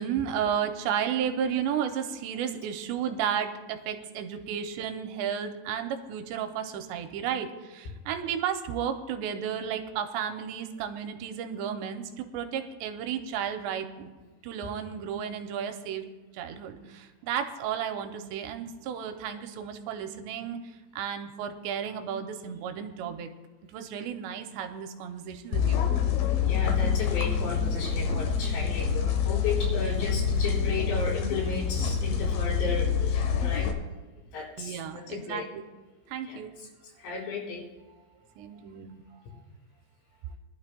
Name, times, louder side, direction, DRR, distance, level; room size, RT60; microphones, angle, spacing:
voice 1, 0.0-14.1 14.4-16.0 16.3-20.6 20.9-23.3 23.7-25.8 34.6-35.4 36.1-36.5 38.4-39.0, right 8 dB, 90° right, 6 dB, 2.9 m, -33 dB
sound 1, 25.5-33.7, left 7 dB, 65° left, 2.3 m, -26 dB
voice 2, 26.4-33.8 34.3-34.8 35.1-35.5 36.3-36.7 37.0-37.6, left 4 dB, 90° left, -6 dB, 5.9 m, -34 dB
22.5 x 11.5 x 2.2 m, 1.2 s
omnidirectional pair, 5.0 m